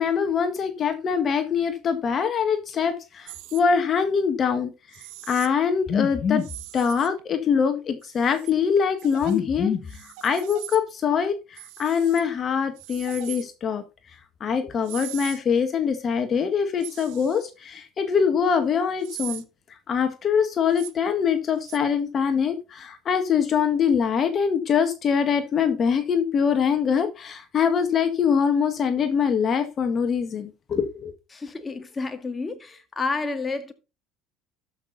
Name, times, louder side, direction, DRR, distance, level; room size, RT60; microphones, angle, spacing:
voice 1, 0.0-4.7 5.3-6.5 6.7-13.8 14.4-19.4 19.9-31.1, left 6 dB, 40° left, 1.7 m, -23 dB
sound 1, 3.3-3.6 4.9-5.5 6.4-7.2 8.0-8.5 9.0-9.4 9.9-10.8 11.6-12.2 12.8-13.5 14.8-15.4 16.8-17.5 19.0-19.4 20.7-20.9 21.6-21.8, right 17 dB, 70° right, 1.1 m, -40 dB
voice 2, 31.3-33.7, left 3 dB, 20° left, 1.9 m, -30 dB
13.0 x 6.2 x 4.0 m
hypercardioid pair, 70°, 0 cm